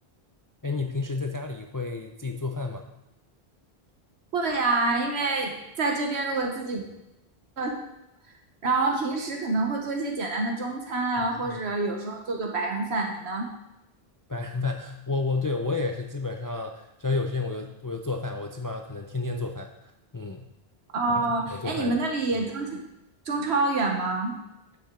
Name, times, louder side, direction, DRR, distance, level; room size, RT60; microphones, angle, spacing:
voice 1, 0.6-2.8 11.2-11.6 14.3-20.5 21.1-21.2 21.5-22.0, left 3 dB, 25° left, 3 dB, 0.4 m, -31 dB
voice 2, 4.3-6.8 7.6-7.7 8.6-13.5 20.9-22.8 23.3-24.3, right 3 dB, 80° right, 2 dB, 1.3 m, -27 dB
9.4 x 7.1 x 3.7 m, 0.89 s
omnidirectional pair, 1.1 m